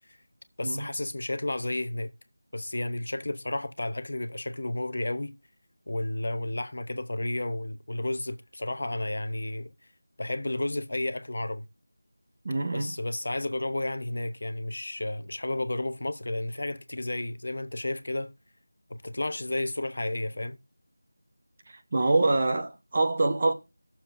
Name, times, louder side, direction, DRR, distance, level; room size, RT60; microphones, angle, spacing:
voice 1, 0.6-2.1 2.5-5.4 5.9-9.7 10.2-11.7 12.7-18.3 18.9-20.6, left 1 dB, 45° left, 0.8 m, -32 dB
voice 2, 12.4-12.9 21.7-23.5, right 2 dB, 25° right, 1.0 m, -25 dB
17.0 x 7.0 x 2.6 m
figure-of-eight pair, 180°, 0 cm